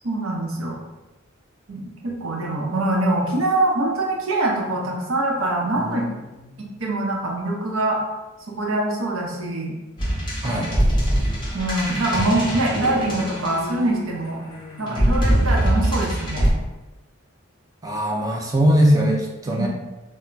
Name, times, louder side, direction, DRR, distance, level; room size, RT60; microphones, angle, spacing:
voice 1, 0.0-0.8 1.7-6.1 6.6-8.0 8.6-9.7 10.4-10.6 11.5-14.4 14.8-16.5 19.5-19.7, right 2 dB, 90° right, -2 dB, 0.7 m, -24 dB
sound 1, 2.7-3.5 3.8-6.9 10.6-15.9, left 2 dB, 80° left, 0.5 m, -41 dB
sound 2, 10.0-14.0 14.9-16.5, equal, 25° left, 0.7 m, -22 dB
voice 2, 17.8-19.7, equal, 15° right, -1 dB, 0.3 m, -20 dB
2.2 x 2.0 x 3.8 m, 1.1 s
head